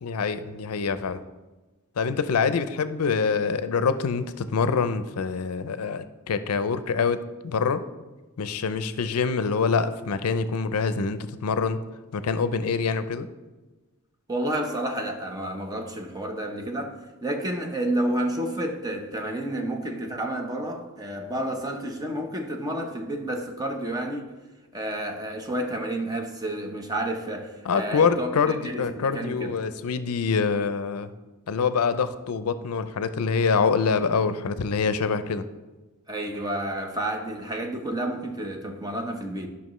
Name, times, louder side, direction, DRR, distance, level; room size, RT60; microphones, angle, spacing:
voice 1, 0.0-1.2 2.0-7.2 7.4-7.8 8.4-11.8 12.1-13.3 27.6-31.1 31.5-35.4, left 5 dB, 80° left, 0.5 m, -25 dB
voice 2, 14.3-24.2 24.7-29.5 36.1-39.5, right 1 dB, 15° right, 0.8 m, -30 dB
11.0 x 5.8 x 3.1 m
head